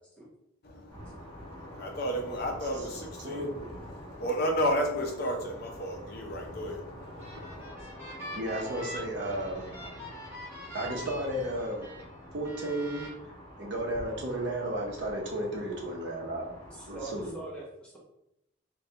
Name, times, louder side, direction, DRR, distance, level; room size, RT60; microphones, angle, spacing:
voice 1, 0.6-3.5 3.9-7.7, equal, 50° left, 2 dB, 0.5 m, -33 dB
sound 1, 0.9-17.3, equal, 25° left, 1.2 m, -47 dB
voice 2, 3.2-3.5 8.4-9.7 10.7-11.9 12.3-13.1 13.6-16.5 16.9-17.3, right 1 dB, 55° right, -1 dB, 0.7 m, -33 dB
sound 2, 7.0-12.0 12.4-13.1, equal, 10° right, 1.1 m, -44 dB
voice 3, 16.6-18.0, right 3 dB, 5° left, -4 dB, 0.6 m, -43 dB
3.3 x 2.3 x 2.7 m, 0.81 s
head